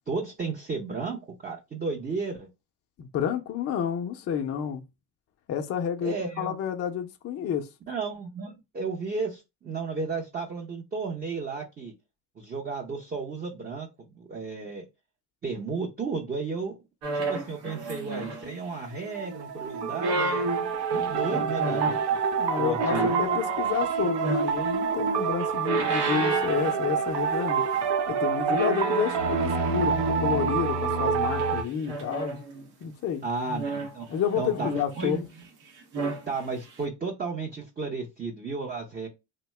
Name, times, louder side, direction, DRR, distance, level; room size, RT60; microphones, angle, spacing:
voice 1, 0.1-1.2 1.4-2.5 6.0-6.6 7.9-11.9 12.4-14.8 15.4-16.8 17.1-20.5 20.9-21.9 22.6-23.1 33.2-34.1 34.4-34.7 35.0-35.2 36.3-39.1, right 4 dB, 20° right, 0.6 m, -33 dB
voice 2, 3.0-4.8 5.5-7.7 20.9-21.5 22.4-32.4 32.8-33.3 34.1-35.2, left 8 dB, 35° left, 0.4 m, -30 dB
sound 1, 17.0-18.8 19.8-22.1 22.8-24.8 25.3-27.4 27.6-27.9 28.5-30.5 31.4-32.7 33.4-35.4 35.8-36.2 36.7-36.8, right 2 dB, 90° right, 0.9 m, -32 dB
sound 2, 18.7-31.6, right 6 dB, 60° right, 0.7 m, -27 dB
2.7 x 2.1 x 3.1 m
supercardioid pair, 90°, 47 cm